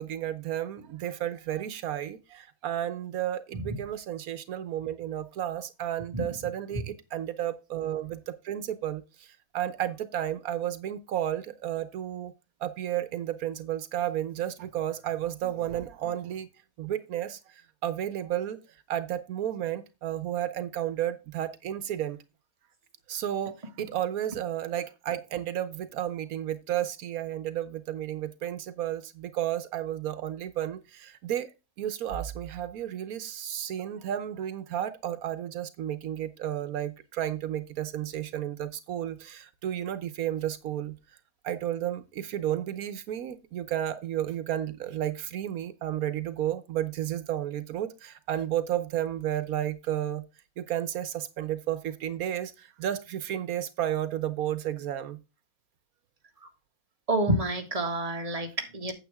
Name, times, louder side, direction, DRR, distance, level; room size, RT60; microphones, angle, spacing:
voice 1, 0.0-12.3 12.6-16.5 16.8-18.6 18.9-22.2 23.1-31.5 31.8-41.0 41.4-50.2 50.6-55.2, right 11 dB, 85° right, 1.3 m, -32 dB
voice 2, 57.1-58.9, right 1 dB, 25° right, 1.9 m, -28 dB
9.2 x 7.7 x 3.5 m
omnidirectional pair, 1.5 m